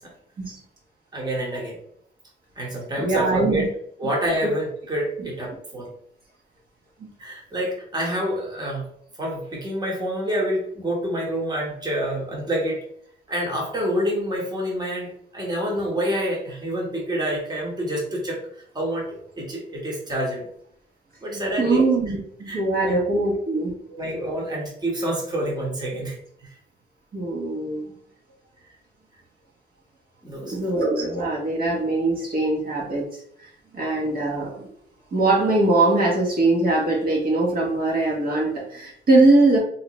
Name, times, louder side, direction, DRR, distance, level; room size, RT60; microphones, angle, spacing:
voice 1, 1.1-1.8 2.5-3.7 4.0-5.9 7.2-8.9 9.2-12.8 13.3-18.4 18.7-20.5 21.2-21.9 22.5-23.2 23.9-26.1 30.2-30.7, equal, 20° right, -3 dB, 1.3 m, -27 dB
voice 2, 3.0-3.7 4.4-4.5 21.3-23.7 27.1-27.9 30.5-33.0 33.4-34.7 35.1-39.6, right 2 dB, 50° right, -4 dB, 1.3 m, -22 dB
3.2 x 2.8 x 3.1 m, 0.66 s
cardioid pair, 90°, 20 cm